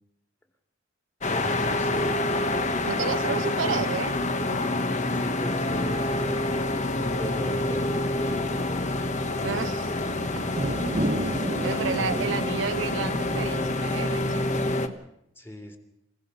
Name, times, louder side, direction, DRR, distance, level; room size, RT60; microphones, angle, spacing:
sound 1, 1.2-14.9, left 2 dB, 40° left, 1.3 m, -27 dB
voice 1, 1.3-2.2 3.3-3.8 5.1-6.4 7.1-9.0 9.9-10.2 11.6-12.4 15.4-15.8, equal, 10° left, 3 dB, 2.8 m, -37 dB
sound 2, 2.0-3.9 5.2-14.7, right 1 dB, 40° right, 1.2 m, -36 dB
voice 2, 2.9-4.1 4.4-4.8 9.4-10.4 11.6-14.4 14.9-15.0, right 5 dB, 85° right, 10 dB, 0.7 m, -31 dB
29.0 x 17.5 x 5.6 m, 0.80 s
head